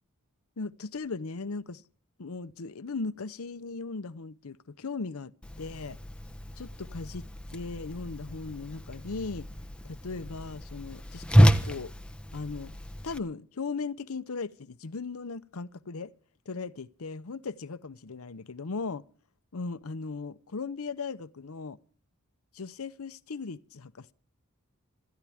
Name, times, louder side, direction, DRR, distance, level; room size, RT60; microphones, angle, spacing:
voice 1, 0.6-1.8 2.2-6.0 6.6-7.3 7.5-9.5 9.8-11.9 12.3-12.7 13.0-16.1 16.5-19.0 19.5-21.8 22.5-24.1, left 4 dB, 75° left, 0.7 m, -37 dB
Whoosh swoosh swish, 5.4-13.2, equal, 5° left, 1.1 m, -28 dB
27.0 x 13.5 x 3.5 m
head